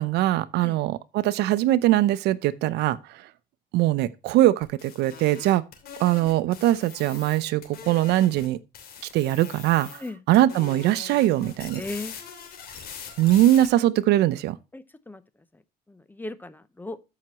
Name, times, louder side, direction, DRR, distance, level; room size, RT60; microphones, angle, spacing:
voice 1, 0.0-3.3 3.7-5.7 6.0-8.6 9.1-11.8 13.2-14.6, right 14 dB, 85° right, 0.7 m, -22 dB
sound 1, 4.6-8.5 8.7-10.1 10.3-13.7, left 7 dB, 65° left, 3.0 m, -42 dB
voice 2, 11.8-12.2 14.7-15.2 15.9-17.0, left 2 dB, 10° left, 0.8 m, -36 dB
13.5 x 5.9 x 3.0 m
cardioid pair, 110°, 17 cm